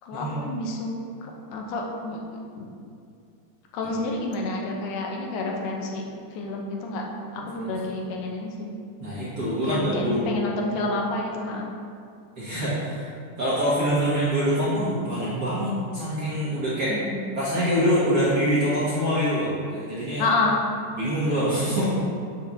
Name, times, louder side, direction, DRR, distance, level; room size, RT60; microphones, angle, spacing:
voice 1, 0.0-2.2 2.6-2.7 3.7-6.0 6.4-7.0 7.3-8.7 9.6-11.7 16.9-17.2 20.2-20.6, left 2 dB, 85° left, 0 dB, 2.3 m, -29 dB
voice 2, 7.4-7.7 9.0-10.2 12.3-13.1 13.4-17.0 17.3-20.2 20.9-21.9, equal, 45° right, -10 dB, 1.5 m, -25 dB
6.9 x 3.5 x 6.0 m, 2.4 s
omnidirectional pair, 3.6 m